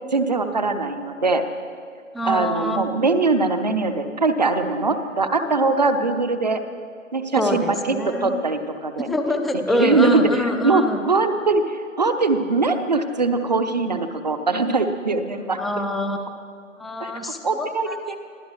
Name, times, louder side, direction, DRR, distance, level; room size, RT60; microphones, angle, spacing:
voice 1, 0.1-1.4 2.2-6.6 7.1-9.1 9.8-10.3 10.6-15.6 17.0-17.1 17.4-18.2, right 3 dB, 30° right, 8 dB, 0.9 m, -21 dB
voice 2, 2.1-2.9 7.4-8.4 9.1-11.0 15.6-16.3 16.8-17.9, left 1 dB, ahead, 4 dB, 0.4 m, -25 dB
26.0 x 16.0 x 3.2 m, 2.1 s
figure-of-eight pair, 155°, 40 cm